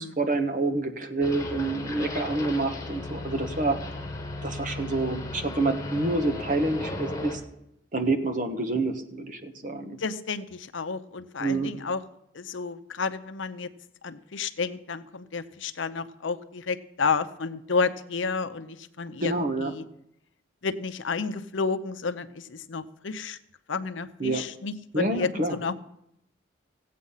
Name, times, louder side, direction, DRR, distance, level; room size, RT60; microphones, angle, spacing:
voice 1, 0.0-3.8 4.4-7.4 7.9-10.0 11.4-11.7 19.2-19.7 24.2-24.4 24.9-25.6, right 2 dB, 40° right, 6 dB, 1.2 m, -27 dB
sound 1, 1.2-7.4, left 2 dB, 15° left, 1.7 m, -35 dB
voice 2, 10.0-12.0 12.3-13.7 14.0-19.8 20.6-23.4 23.7-25.7, left 4 dB, 75° left, 11 dB, 0.7 m, -31 dB
16.0 x 8.5 x 5.6 m, 0.79 s
head